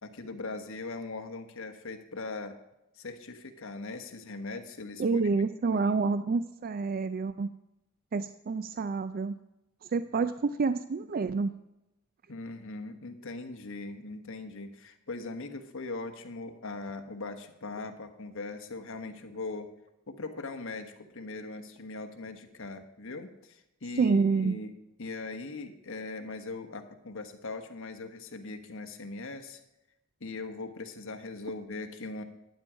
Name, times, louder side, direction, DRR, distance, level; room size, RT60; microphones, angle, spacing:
voice 1, 0.0-2.5 3.0-5.2 5.6-5.9 10.2-10.3 12.3-19.7 20.1-24.2 24.4-24.7 25.0-29.6 30.2-32.2, left 3 dB, 65° left, 6 dB, 1.3 m, -40 dB
voice 2, 5.0-7.5 8.1-9.4 9.9-11.5 24.0-24.5, right 4 dB, 45° right, 12 dB, 0.4 m, -28 dB
12.0 x 9.1 x 5.0 m, 0.90 s
head